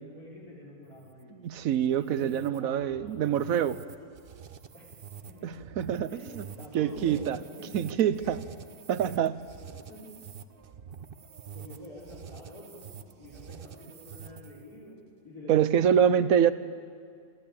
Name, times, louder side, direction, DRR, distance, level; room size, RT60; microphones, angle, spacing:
voice 1, 0.1-1.3 2.0-3.6 4.0-4.1 4.7-4.9 5.3-5.6 6.1-8.3 9.0-9.2 9.6-10.1 11.5-12.8 13.2-15.0 15.2-16.4, left 1 dB, 80° left, -4 dB, 4.8 m, -47 dB
sound 1, 0.9-14.7, right 7 dB, 45° right, 0.8 m, -47 dB
voice 2, 1.3-3.8 5.4-6.4 6.7-7.4 7.7-8.4 8.9-9.3 15.5-16.5, right 9 dB, 70° right, 14 dB, 1.1 m, -25 dB
27.5 x 13.0 x 8.7 m, 2.2 s
omnidirectional pair, 1.6 m